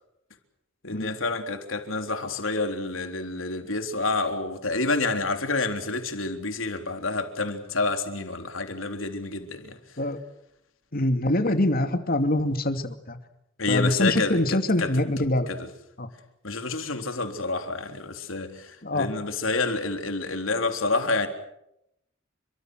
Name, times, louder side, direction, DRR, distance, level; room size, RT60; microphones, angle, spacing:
voice 1, 0.8-9.8 13.6-14.9 15.5-15.6 16.4-21.3, left 3 dB, 85° left, 3.6 m, -28 dB
voice 2, 10.9-13.2 13.7-15.5 16.0-16.1 18.8-19.1, left 1 dB, 50° left, 2.6 m, -24 dB
29.5 x 25.0 x 6.4 m
head